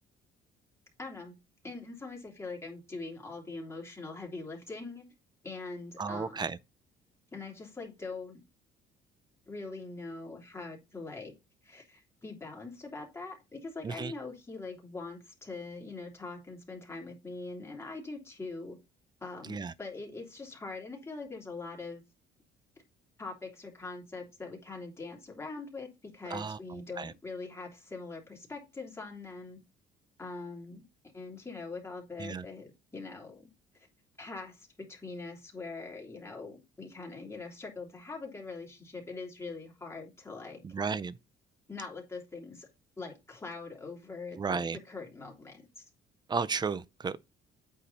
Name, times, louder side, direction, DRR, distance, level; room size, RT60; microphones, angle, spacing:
voice 1, 1.0-1.4 1.6-5.0 5.4-6.5 7.3-8.4 9.5-11.3 11.6-18.8 19.2-22.0 23.2-29.6 30.2-30.8 31.1-33.5 33.7-33.9 34.2-40.6 41.7-42.7 43.0-45.8, left 3 dB, 15° left, 3.2 m, -43 dB
voice 2, 6.0-6.6 13.8-14.1 19.5-19.7 26.3-26.6 27.0-27.1 32.2-32.4 40.7-41.1 44.4-44.8 46.3-47.2, right 5 dB, 25° right, 0.6 m, -33 dB
8.7 x 4.9 x 4.1 m
cardioid pair, 110°, 17 cm